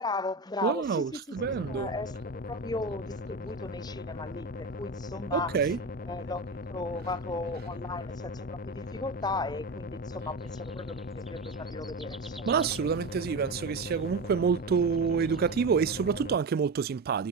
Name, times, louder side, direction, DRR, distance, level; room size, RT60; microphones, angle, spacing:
voice 1, 0.0-5.6 6.1-12.6, left 3 dB, 20° left, 0.9 m, -36 dB
voice 2, 0.6-1.9 5.3-5.8 12.5-17.3, right 6 dB, 50° right, 0.3 m, -27 dB
sound 1, 1.3-16.4, left 3 dB, 45° left, 0.7 m, -39 dB
sound 2, 2.0-10.1, left 4 dB, 65° left, 6.9 m, -69 dB
sound 3, 10.4-14.1 14.6-15.6, equal, ahead, 0.7 m, -52 dB
head